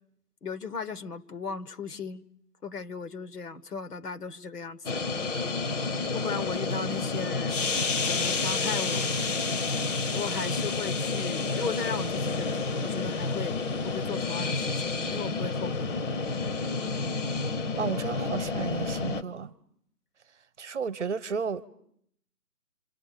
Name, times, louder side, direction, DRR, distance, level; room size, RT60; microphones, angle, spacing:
voice 1, 0.4-2.2 2.6-5.0 6.1-7.6 8.0-9.1 10.1-13.6 13.8-16.1, left 5 dB, 80° left, 1.4 m, -37 dB
sound 1, 4.9-19.2, left 4 dB, 50° left, 1.0 m, -29 dB
voice 2, 17.8-19.5 20.6-21.7, right 6 dB, 50° right, 1.0 m, -32 dB
27.5 x 27.5 x 6.7 m
figure-of-eight pair, 155°, 47 cm